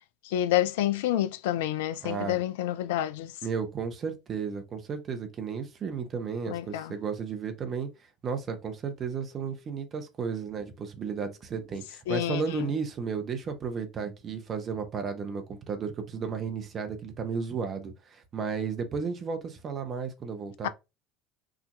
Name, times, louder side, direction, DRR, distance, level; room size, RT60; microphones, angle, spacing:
voice 1, 0.3-3.3 6.5-6.9 12.1-12.7 20.6-20.7, left 13 dB, 65° left, 0.3 m, -28 dB
voice 2, 2.0-2.4 3.4-7.9 8.2-20.7, right 5 dB, 35° right, 0.9 m, -33 dB
4.9 x 2.8 x 2.2 m
figure-of-eight pair, 65°, 0 cm